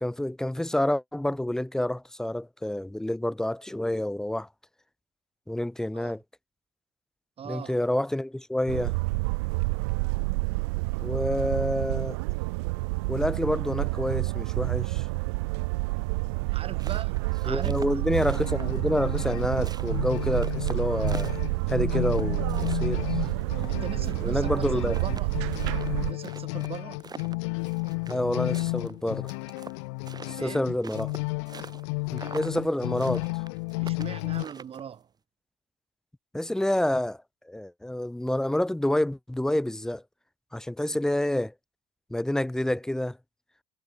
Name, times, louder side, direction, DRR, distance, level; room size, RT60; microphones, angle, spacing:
voice 1, 0.0-4.5 5.5-6.2 7.5-9.0 11.0-12.2 13.1-15.0 17.4-21.4 21.7-23.0 24.2-24.9 28.1-29.3 30.3-31.1 32.1-33.3 36.3-37.2 37.5-40.0 40.5-41.5 42.1-43.2, left 1 dB, 5° left, 0.4 m, -28 dB
voice 2, 7.4-7.7 16.5-17.8 23.7-25.3 26.1-27.0 30.4-30.7 33.8-35.1, right 8 dB, 45° right, 4.0 m, -40 dB
sound 1, 8.7-26.1, right 27 dB, 85° right, 0.7 m, -29 dB
sound 2, 16.6-18.9 19.2-21.7 22.1-24.4 24.6-24.7 24.9-28.3 28.5-31.9 32.1-32.6 33.0-35.0, right 5 dB, 30° right, 4.3 m, -44 dB
sound 3, 18.4-34.4, left 30 dB, 80° left, 0.6 m, -33 dB
supercardioid pair, 75°, 14 cm